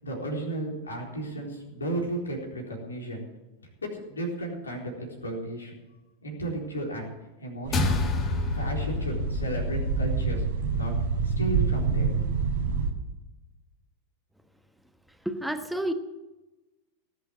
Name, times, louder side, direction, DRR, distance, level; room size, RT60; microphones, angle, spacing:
voice 1, 0.0-3.2 3.8-5.8 6.2-7.1 7.4-8.0 8.5-10.4 10.7-10.9 11.2-12.3, right 1 dB, 75° left, 0 dB, 4.1 m, -34 dB
sound 1, 7.6-12.9, right 5 dB, 55° right, 1.7 m, -28 dB
sound 2, 7.7-12.3, left 4 dB, 30° left, 1.8 m, -31 dB
voice 2, 15.2-15.9, right 1 dB, ahead, 7 dB, 1.2 m, -29 dB
19.0 x 8.2 x 7.8 m, 1.1 s
figure-of-eight pair, 90°, 0 cm